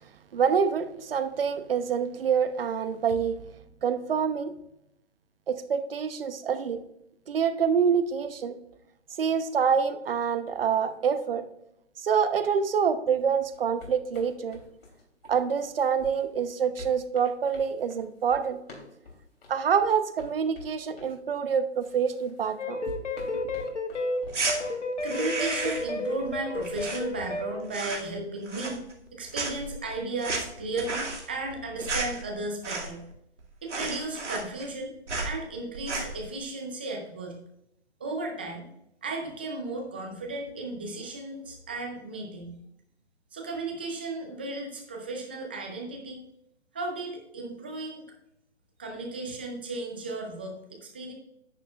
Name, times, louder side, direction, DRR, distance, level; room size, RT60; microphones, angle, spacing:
voice 1, 0.3-3.4 3.8-4.5 5.5-6.8 7.3-8.6 9.2-11.4 12.0-14.6 15.3-18.6 19.5-22.8, right 7 dB, 55° right, 11 dB, 0.9 m, -26 dB
sound 1, 13.5-21.2 21.8-24.8, left 3 dB, 60° left, 3.3 m, -49 dB
sound 2, 22.6-27.6, left 2 dB, 80° left, 1.5 m, -32 dB
sound 3, 24.3-24.6 25.0-26.0 26.2-27.4 27.7-28.2 28.5-29.1 29.3-33.1 33.4-33.5 33.7-34.8 35.1-35.3 35.7-36.2, right 3 dB, 80° right, 2.4 m, -33 dB
voice 2, 25.0-28.8 29.1-33.0 33.6-35.0 35.2-37.4 38.0-38.7 39.0-42.6 43.3-46.2 46.7-48.0 48.8-51.1, right 2 dB, 10° right, 1 dB, 0.4 m, -35 dB
10.5 x 8.2 x 2.4 m, 0.78 s
hypercardioid pair, 150°, 35 cm